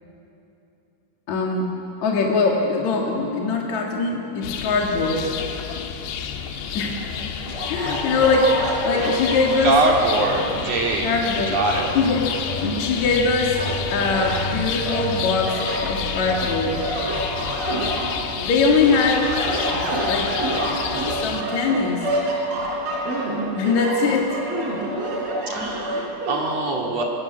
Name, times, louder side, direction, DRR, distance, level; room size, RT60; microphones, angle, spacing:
voice 1, 1.3-1.7 2.0-5.3 6.7-7.1 7.7-9.7 11.0-11.6 12.0-12.2 12.6-13.6 13.9-16.8 18.4-19.3 19.7-19.8 20.1-20.3 21.1-22.1 23.6-24.4 24.9-25.0 25.9-26.1, left 4 dB, 55° left, 0 dB, 2.7 m, -22 dB
sound 1, 4.4-21.4, left 6 dB, 80° left, 3.4 m, -30 dB
sound 2, 7.5-10.9 11.4-13.1 13.5-14.4 14.9-18.5 18.8-26.4, right 1 dB, 65° right, 5.9 m, -28 dB
voice 2, 9.6-11.1 11.5-11.9 25.5-27.0, right 2 dB, 45° right, -1 dB, 2.9 m, -23 dB
24.5 x 20.0 x 8.7 m, 2.9 s
omnidirectional pair, 4.7 m